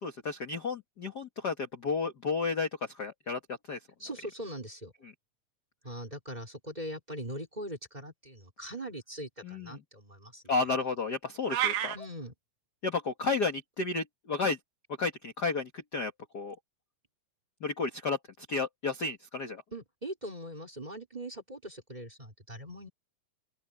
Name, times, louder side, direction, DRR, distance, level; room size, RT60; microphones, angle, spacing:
voice 1, 0.0-3.8 9.4-9.8 10.5-12.0 12.8-14.6 15.0-16.6 17.6-19.6, left 4 dB, 40° left, 1.9 m, -32 dB
voice 2, 4.0-4.9 5.8-10.4 11.9-12.3 19.7-22.9, right 1 dB, 15° right, 3.5 m, -41 dB
sound 1, 11.5-12.0, right 11 dB, 85° right, 2.8 m, -29 dB
open air
omnidirectional pair, 3.6 m